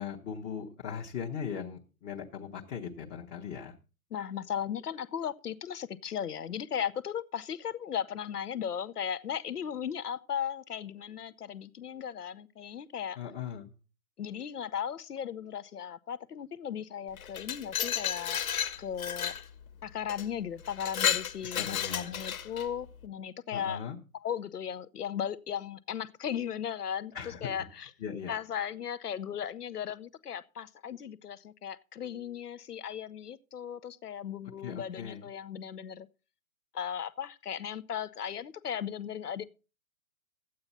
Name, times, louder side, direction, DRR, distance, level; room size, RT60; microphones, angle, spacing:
voice 1, 0.0-3.7 13.2-13.7 21.5-22.1 23.5-24.0 27.1-27.6 28.0-28.3 34.6-35.3, left 7 dB, 20° left, 0.9 m, -39 dB
voice 2, 4.1-13.2 14.2-18.4 18.8-19.3 19.8-23.8 24.1-27.9 28.3-36.1 36.7-39.4, left 8 dB, 85° left, 0.8 m, -36 dB
Glass, 17.2-19.4 20.1-20.3 20.7-22.7, left 9 dB, 65° left, 1.3 m, -32 dB
13.0 x 8.7 x 4.1 m
hypercardioid pair, 130°, 45 cm